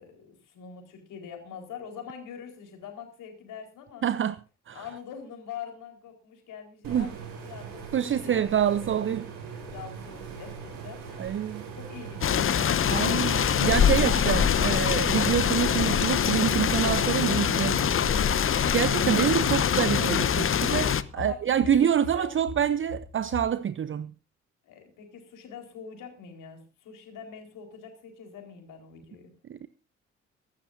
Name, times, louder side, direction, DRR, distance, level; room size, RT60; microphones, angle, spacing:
voice 1, 0.0-4.0 4.7-8.4 8.7-9.0 9.5-13.5 19.0-19.3 21.1-21.7 22.1-22.3 24.6-29.3, left 7 dB, 60° left, 4.5 m, -44 dB
voice 2, 4.0-4.4 4.7-4.8 6.9-7.1 7.9-9.3 11.2-11.6 12.9-17.8 18.7-24.1 29.5-29.7, right 9 dB, 35° right, 0.7 m, -26 dB
sound 1, 6.8-20.4, right 7 dB, 70° right, 4.6 m, -40 dB
sound 2, 12.2-21.0, left 8 dB, 35° left, 0.9 m, -24 dB
sound 3, 16.4-23.4, left 5 dB, 85° left, 5.8 m, -41 dB
24.0 x 12.5 x 2.7 m
figure-of-eight pair, 45°, 35 cm